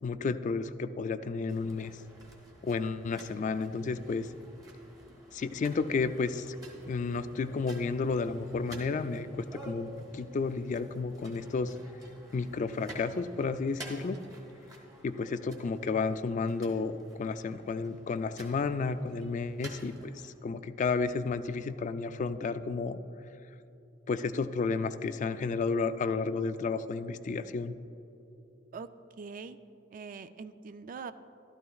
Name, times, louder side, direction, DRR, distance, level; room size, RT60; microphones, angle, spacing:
voice 1, 0.0-1.9 2.6-4.3 5.3-6.6 6.9-11.7 12.3-14.2 15.0-23.0 24.1-27.8, left 4 dB, 40° left, 11 dB, 0.3 m, -32 dB
sound 1, 1.5-20.3, right 1 dB, 20° right, 1.5 m, -51 dB
voice 2, 29.2-29.6 29.9-31.1, right 5 dB, 45° right, 12 dB, 0.3 m, -42 dB
12.5 x 12.5 x 2.3 m, 2.9 s
head